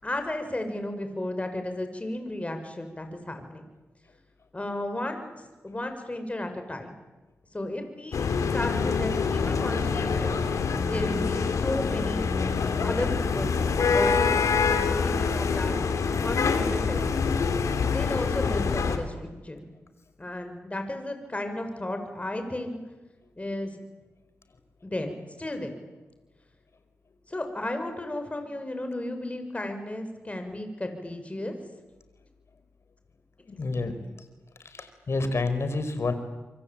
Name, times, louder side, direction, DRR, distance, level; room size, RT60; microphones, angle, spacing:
voice 1, 0.0-3.7 4.5-5.3 5.6-7.0 7.5-8.3 8.5-10.4 10.9-12.3 12.8-13.6 13.9-15.8 16.2-17.3 17.9-19.6 20.2-22.8 23.4-23.7 24.8-25.7 27.3-31.6, left 1 dB, 25° left, 6 dB, 6.8 m, -33 dB
sound 1, 8.1-19.0, left 5 dB, 80° left, 3.1 m, -25 dB
voice 2, 33.5-34.0 34.6-36.1, left 3 dB, 55° left, 10 dB, 5.0 m, -29 dB
27.0 x 25.0 x 8.9 m, 1.1 s
cardioid pair, 50°, 5 cm